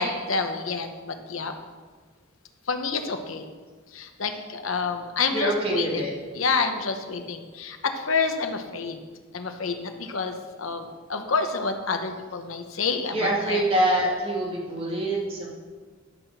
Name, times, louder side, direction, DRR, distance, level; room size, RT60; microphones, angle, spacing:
voice 1, 0.0-1.5 2.7-3.4 3.9-6.0 6.3-9.0 9.3-13.6, left 4 dB, 75° left, 6 dB, 1.0 m, -28 dB
voice 2, 5.3-6.2 13.1-15.5, right 1 dB, 30° right, -5 dB, 2.8 m, -25 dB
11.5 x 5.9 x 6.7 m, 1.5 s
head